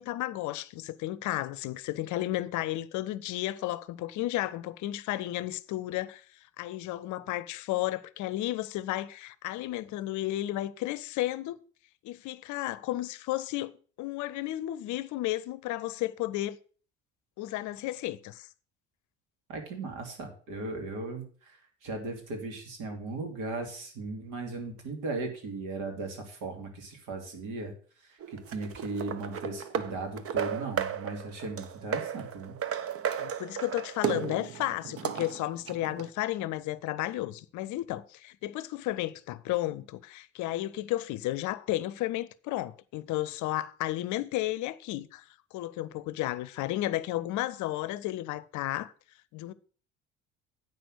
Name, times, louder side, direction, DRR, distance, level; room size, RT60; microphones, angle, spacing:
voice 1, 0.0-6.2 6.6-11.6 12.0-13.7 14.0-16.6 17.4-18.5 33.2-45.2 45.5-48.9 49.3-49.5, left 15 dB, 60° left, 0.7 m, -33 dB
voice 2, 19.5-21.5 21.8-27.7 28.5-32.6, right 3 dB, 65° right, 2.8 m, -37 dB
sound 1, 28.2-36.1, right 8 dB, 45° right, 0.9 m, -35 dB
8.8 x 6.0 x 6.3 m
hypercardioid pair, 65°, 34 cm